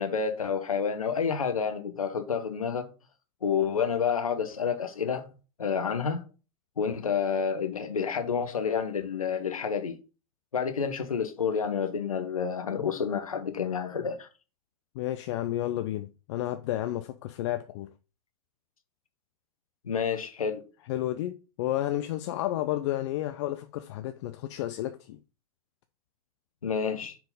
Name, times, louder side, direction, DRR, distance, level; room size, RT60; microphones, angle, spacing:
voice 1, 0.0-2.9 3.4-5.3 5.6-6.2 6.8-10.0 10.5-14.3 19.9-20.6 26.6-27.2, left 6 dB, 90° left, 0.8 m, -29 dB
voice 2, 15.0-17.9 20.9-25.2, left 13 dB, 55° left, 0.5 m, -31 dB
4.6 x 3.8 x 5.3 m
hypercardioid pair, 100°, 18 cm